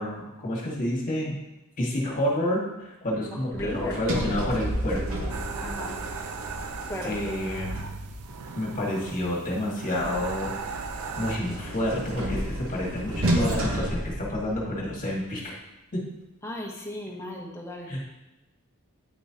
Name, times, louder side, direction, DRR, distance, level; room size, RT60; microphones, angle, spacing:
voice 1, 0.0-1.4 1.8-2.6 3.0-5.0 7.0-7.8 8.5-10.5 11.2-15.5 15.9-16.0 17.8-18.0, left 1 dB, 35° left, -4 dB, 1.8 m, -29 dB
voice 2, 3.3-4.0 5.6-6.0 6.9-7.2 16.4-17.9, left 1 dB, 10° left, 0 dB, 1.0 m, -36 dB
Sliding door, 3.5-8.4 10.0-14.9, right 1 dB, 65° right, 1.0 m, -32 dB
sound 1, 5.3-11.4, right 5 dB, 90° right, 0.6 m, -38 dB
9.1 x 5.3 x 2.8 m, 0.99 s
head